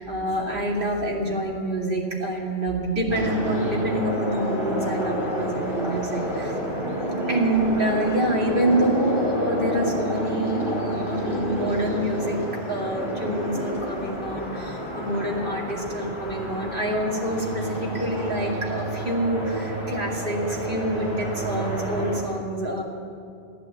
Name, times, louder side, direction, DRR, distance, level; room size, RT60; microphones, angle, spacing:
voice 1, 0.0-6.5 7.3-12.4 12.7-22.8, right 1 dB, 50° right, -2 dB, 2.7 m, -27 dB
sound 1, 3.1-22.2, right 1 dB, 25° left, 4.0 m, -29 dB
14.5 x 12.0 x 8.1 m, 2.4 s
omnidirectional pair, 1.2 m